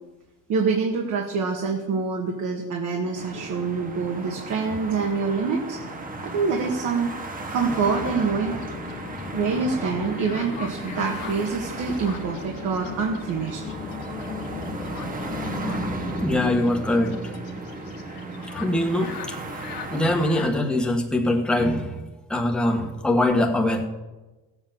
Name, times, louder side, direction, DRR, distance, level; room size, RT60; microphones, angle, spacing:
voice 1, 0.5-5.8 6.2-8.6 9.3-13.6, right 5 dB, 50° right, 0 dB, 2.0 m, -26 dB
sound 1, 3.1-20.3, right 2 dB, 20° right, 1.4 m, -35 dB
sound 2, 7.5-16.6, left 7 dB, 25° left, 0.7 m, -38 dB
sound 3, 7.7-20.6, left 9 dB, 65° left, 1.8 m, -44 dB
voice 2, 16.2-17.3 18.5-19.4 19.9-22.0 22.3-23.8, left 1 dB, ahead, 1 dB, 1.6 m, -23 dB
16.5 x 8.1 x 7.4 m, 1.2 s
cardioid pair, 140°, 37 cm